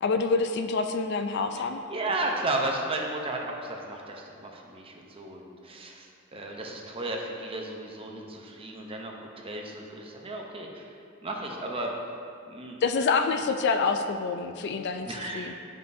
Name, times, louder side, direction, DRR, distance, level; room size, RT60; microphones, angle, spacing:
voice 1, 0.0-1.8 12.8-15.1 15.3-15.5, left 4 dB, 55° left, 7 dB, 0.4 m, -26 dB
voice 2, 1.5-10.9 11.2-11.9 12.5-12.8 15.0-15.5, right 2 dB, 25° right, 1 dB, 0.7 m, -34 dB
9.9 x 5.4 x 2.7 m, 2.4 s
head